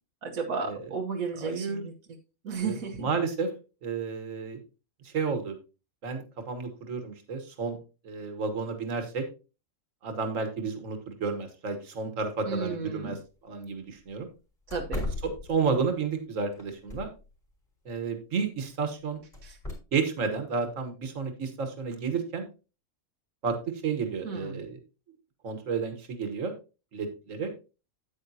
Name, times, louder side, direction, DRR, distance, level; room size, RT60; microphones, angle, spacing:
voice 1, 0.2-1.9 2.4-3.1 12.4-13.2 14.7-15.0 19.4-19.6 24.2-24.6, right 5 dB, 85° right, 1 dB, 1.5 m, -33 dB
voice 2, 1.4-1.9 2.6-3.5 3.8-4.6 5.0-5.6 6.0-7.8 8.0-9.2 10.0-13.2 13.4-14.3 15.2-17.1 17.9-19.2 19.9-22.5 23.4-24.8 25.4-26.5 26.9-27.5, right 5 dB, 65° right, 7 dB, 1.7 m, -31 dB
sound 1, 13.1-13.2 13.6-13.7 14.1-14.2 14.7-15.9 16.5-17.3 19.3-19.7, left 2 dB, 25° left, 3.5 m, -37 dB
8.9 x 8.9 x 2.7 m, 0.32 s
omnidirectional pair, 1.4 m